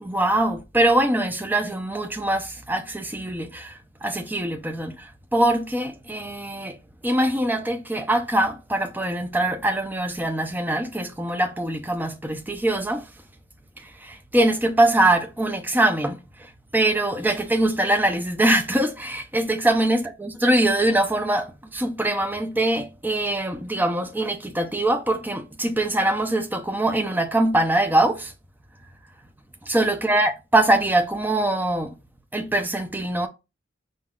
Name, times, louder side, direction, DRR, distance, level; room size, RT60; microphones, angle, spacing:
voice 1, 0.0-6.8 7.0-13.1 13.8-16.2 16.7-28.3 29.7-31.9 32.3-33.3, right 1 dB, 10° right, 0.6 m, -23 dB
5.3 x 4.0 x 2.3 m
head